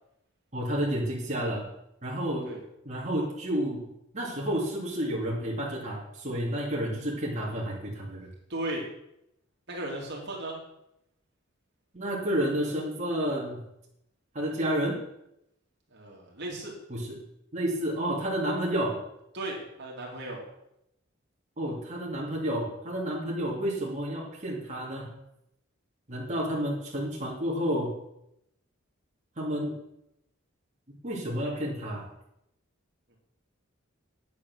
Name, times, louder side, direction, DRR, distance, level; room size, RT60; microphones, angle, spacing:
voice 1, 0.5-1.6 2.0-2.5 2.8-3.9 4.1-8.3 11.9-13.6 14.3-15.0 16.9-17.2 17.5-19.0 21.6-25.1 26.1-27.9 29.4-29.8 31.0-32.1, equal, 35° right, -4 dB, 2.6 m, -30 dB
voice 2, 8.5-8.9 9.7-10.6 15.9-16.7 19.3-20.4 33.1-33.2, right 1 dB, 60° right, -2 dB, 2.9 m, -36 dB
9.5 x 8.4 x 6.3 m, 0.81 s
head